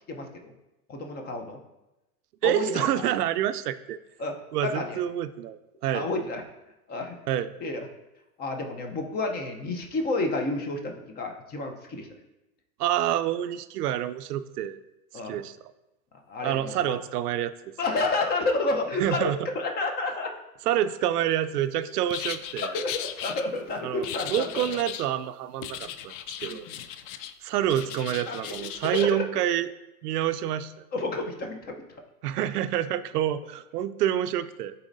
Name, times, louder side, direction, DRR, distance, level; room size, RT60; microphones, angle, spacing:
voice 1, 0.1-0.5 0.9-1.6 2.4-3.1 4.2-4.3 4.6-5.0 5.9-6.4 6.9-7.1 7.6-7.9 8.4-12.1 15.1-15.4 16.3-17.0 17.8-20.3 22.6-24.8 25.8-25.9 26.4-26.8 28.3-28.5 28.9-29.3 30.9-31.8, left 2 dB, 20° left, 4 dB, 0.7 m, -30 dB
voice 2, 2.4-4.0 4.5-6.1 7.3-7.5 12.8-14.8 15.2-15.6 16.4-17.5 19.0-19.4 20.7-22.7 23.8-26.1 26.4-26.6 27.4-29.7 30.0-30.7 32.2-34.7, right 11 dB, 85° right, 12 dB, 0.5 m, -27 dB
sound 1, 22.1-23.4 24.0-25.1 25.6-27.3 27.7-29.1, left 10 dB, 60° left, 0.5 m, -37 dB
11.0 x 4.2 x 2.6 m, 0.97 s
hypercardioid pair, 130°, 45 cm